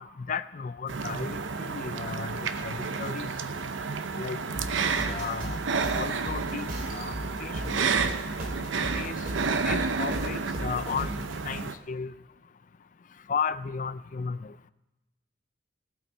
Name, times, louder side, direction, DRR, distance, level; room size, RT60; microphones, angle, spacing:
voice 1, 0.0-3.3 4.2-4.4 5.1-5.6 5.9-7.1 7.4-7.8 8.9-9.2 9.6-12.1 13.3-14.5, left 6 dB, 45° left, 15 dB, 0.4 m, -34 dB
sound 1, 0.9-11.7, right 4 dB, 85° right, 0.8 m, -31 dB
sound 2, 4.5-11.4, right 1 dB, 50° right, 2.6 m, -37 dB
17.0 x 8.4 x 5.5 m, 1.0 s
head